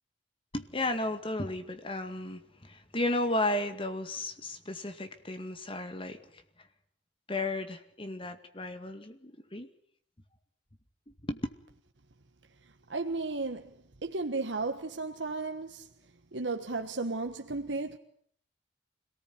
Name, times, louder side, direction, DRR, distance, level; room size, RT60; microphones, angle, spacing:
voice 1, 0.5-6.2 7.3-9.7 11.1-11.5, left 1 dB, 30° left, 2.1 m, -34 dB
voice 2, 12.9-13.7 14.0-15.9 16.3-18.0, right 3 dB, 85° right, 1.4 m, -34 dB
26.0 x 18.5 x 9.6 m
head